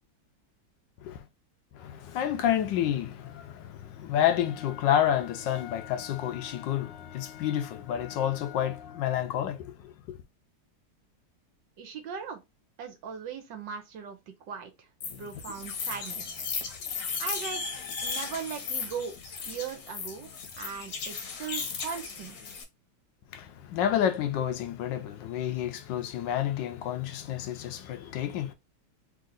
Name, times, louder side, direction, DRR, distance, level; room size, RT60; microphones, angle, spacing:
voice 1, 1.7-10.2 23.3-28.5, left 10 dB, 75° left, 1.2 m, -29 dB
voice 2, 11.8-12.4 12.8-14.2 14.5-14.9 15.2-16.4 17.2-17.6 18.0-19.1 19.5-20.3 20.6-22.4, right 7 dB, 70° right, 1.4 m, -38 dB
sound 1, 15.0-22.6, left 5 dB, 55° left, 1.2 m, -36 dB
3.7 x 2.8 x 3.8 m
omnidirectional pair, 2.1 m